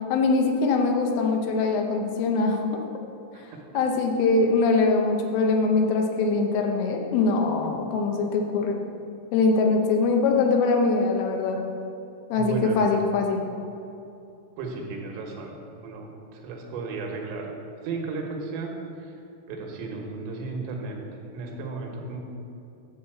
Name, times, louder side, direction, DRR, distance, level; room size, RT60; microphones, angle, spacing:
voice 1, 0.1-2.8 3.7-8.8 9.3-11.6 12.3-13.4, left 3 dB, 80° left, 2 dB, 3.3 m, -22 dB
voice 2, 12.3-12.8 14.6-15.5 15.8-17.5 17.8-18.7 19.5-21.0 21.3-22.2, right 3 dB, 80° right, 0 dB, 3.8 m, -34 dB
11.0 x 4.2 x 7.7 m, 2.7 s
omnidirectional pair, 5.8 m